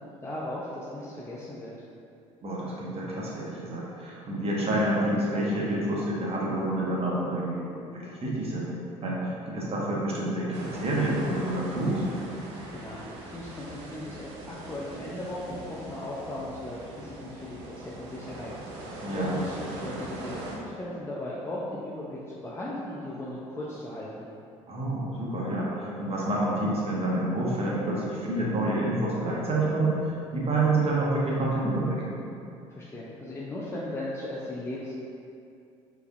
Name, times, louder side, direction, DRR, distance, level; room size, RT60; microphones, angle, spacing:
voice 1, 0.0-1.7 12.7-24.3 32.7-35.0, left 1 dB, 15° left, -6 dB, 0.6 m, -37 dB
voice 2, 2.4-8.7 9.0-12.0 19.0-19.4 24.7-30.0 30.3-32.1, right 1 dB, 40° right, -5 dB, 1.2 m, -28 dB
sound 1, 10.5-20.6, right 2 dB, 80° right, 0.6 m, -41 dB
4.6 x 3.3 x 2.6 m, 2.5 s
hypercardioid pair, 65°, 15 cm